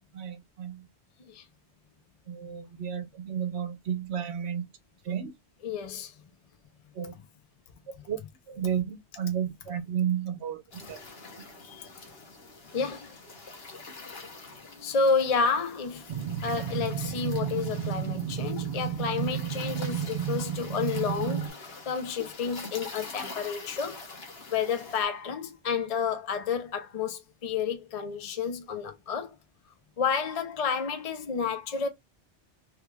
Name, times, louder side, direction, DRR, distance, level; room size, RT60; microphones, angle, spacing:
voice 1, 0.1-0.9 2.3-4.7 5.1-5.3 7.0-7.1 8.1-8.2 8.5-10.6 10.9-11.0, right 9 dB, 70° right, 1.0 m, -32 dB
voice 2, 5.6-6.1 7.1-7.2 11.7-11.9 12.7-13.1 14.8-16.0 16.4-24.0 24.5-29.3 30.0-31.9, left 5 dB, 40° left, 0.6 m, -30 dB
sound 1, 10.7-25.0, left 3 dB, 60° left, 1.3 m, -45 dB
sound 2, 16.1-21.5, right 9 dB, 55° right, 0.6 m, -32 dB
3.2 x 2.3 x 3.2 m
omnidirectional pair, 1.2 m